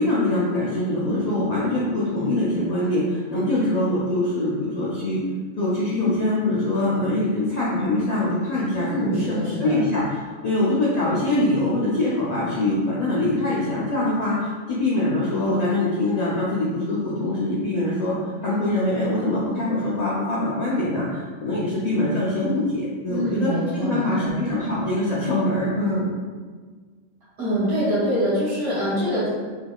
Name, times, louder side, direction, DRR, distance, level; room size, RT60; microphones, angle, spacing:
voice 1, 0.0-5.2 5.6-18.1 18.4-26.1, left 1 dB, 75° left, -7 dB, 0.3 m, -23 dB
voice 2, 8.8-9.8 23.1-24.4 27.4-29.3, equal, 65° right, -11 dB, 1.5 m, -24 dB
3.4 x 3.3 x 2.2 m, 1.5 s
omnidirectional pair, 1.4 m